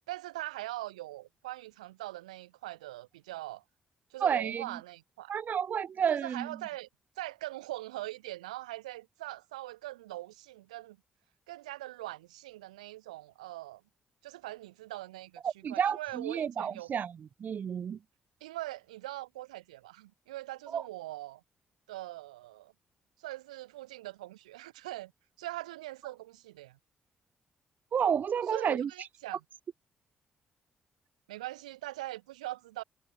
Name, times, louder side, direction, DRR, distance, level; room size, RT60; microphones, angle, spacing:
voice 1, 0.1-3.6 4.1-5.4 6.2-6.9 7.2-11.0 11.5-13.8 14.2-16.9 18.4-21.4 21.9-22.7 23.2-25.1 25.4-26.8 28.5-29.4 31.3-32.8, right 17 dB, 90° right, 1.6 m, -42 dB
voice 2, 4.2-4.6 5.3-6.5 15.4-17.1 17.4-18.0 20.7-20.8 27.9-28.9, right 7 dB, 55° right, 0.8 m, -30 dB
hypercardioid pair, 45°, 4 cm